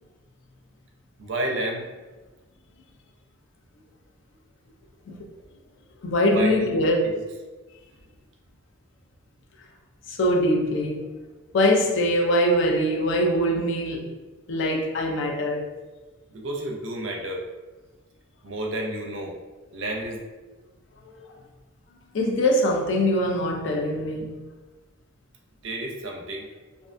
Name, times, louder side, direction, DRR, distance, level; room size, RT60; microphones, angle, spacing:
voice 1, 1.2-1.9 6.3-6.7 7.0-7.2 16.3-17.5 18.4-19.3 19.7-20.2 25.6-26.5, right 1 dB, 65° right, 1 dB, 0.4 m, -30 dB
voice 2, 6.0-6.9 10.1-11.0 11.5-14.1 14.5-15.7 22.1-24.4, equal, 65° left, 0 dB, 0.4 m, -23 dB
2.5 x 2.2 x 2.5 m, 1.2 s
head